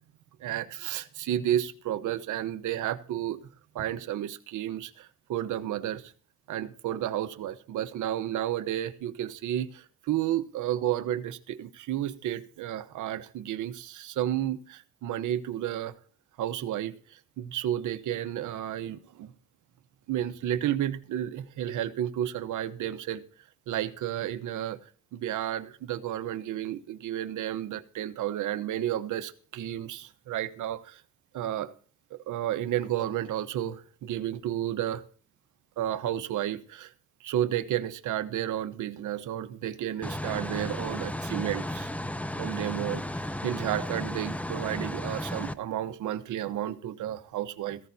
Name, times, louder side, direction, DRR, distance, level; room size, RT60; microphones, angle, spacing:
voice 1, 0.4-3.4 3.7-6.1 6.5-15.9 16.4-19.3 20.1-23.2 23.7-24.8 25.1-31.0 31.3-31.7 32.1-35.0 35.8-36.9 37.2-41.9 42.4-47.8, right 12 dB, 80° right, 1.1 m, -32 dB
sound 1, 40.0-45.5, left 1 dB, 5° left, 0.6 m, -34 dB
16.0 x 15.0 x 2.8 m
cardioid pair, 90°, 30 cm